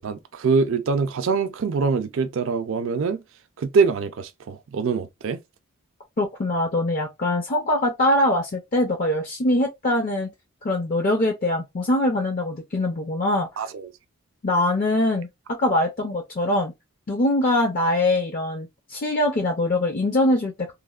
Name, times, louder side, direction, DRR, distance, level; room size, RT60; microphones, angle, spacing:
voice 1, 0.0-3.2 3.6-5.4 13.6-13.9, right 5 dB, 60° right, 0.4 m, -24 dB
voice 2, 6.2-10.3 10.6-13.5 14.4-16.7 17.1-20.7, left 1 dB, 40° left, 0.4 m, -23 dB
3.1 x 2.1 x 2.3 m
head